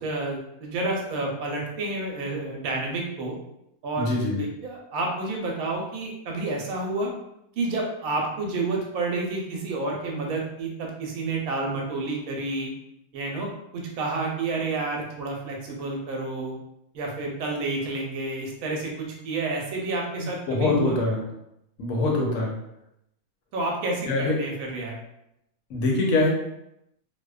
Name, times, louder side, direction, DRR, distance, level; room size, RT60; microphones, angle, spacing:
voice 1, 0.0-3.4 3.8-4.1 4.4-7.1 7.6-12.7 13.1-13.5 13.7-16.5 16.9-21.0 23.5-25.0, right 2 dB, 75° right, 0 dB, 1.0 m, -30 dB
voice 2, 4.0-4.4 20.2-21.2 21.8-22.5 24.1-24.4 25.7-26.3, left 2 dB, 70° left, -1 dB, 1.0 m, -24 dB
2.6 x 2.1 x 2.3 m, 0.82 s
omnidirectional pair, 1.6 m